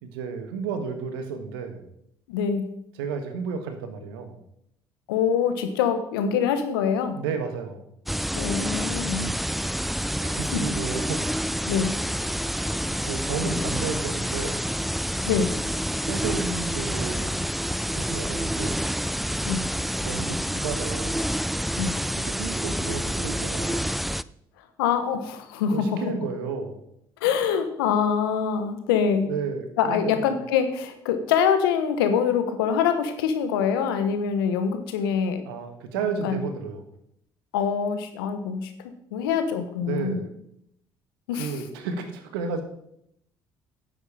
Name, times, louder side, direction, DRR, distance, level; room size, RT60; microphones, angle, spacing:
voice 1, 0.0-1.8 3.0-4.4 7.1-7.9 10.2-11.3 13.1-14.6 16.0-17.4 17.9-18.9 20.0-21.2 22.2-24.0 25.7-26.8 29.3-30.4 35.4-36.8 39.8-40.3 41.3-42.6, right 5 dB, 80° right, 7 dB, 1.4 m, -32 dB
voice 2, 2.3-2.7 5.1-7.2 8.3-9.3 10.5-10.6 11.7-11.9 15.2-15.5 19.4-19.6 21.8-22.0 24.8-26.0 27.2-29.3 29.8-35.4 36.2-36.4 37.5-38.7 39.1-40.2 41.3-41.6, left 7 dB, 80° left, 8 dB, 1.1 m, -24 dB
sound 1, 8.1-24.2, equal, ahead, 0.3 m, -28 dB
9.7 x 8.0 x 4.8 m, 0.76 s
hypercardioid pair, 55°, 12 cm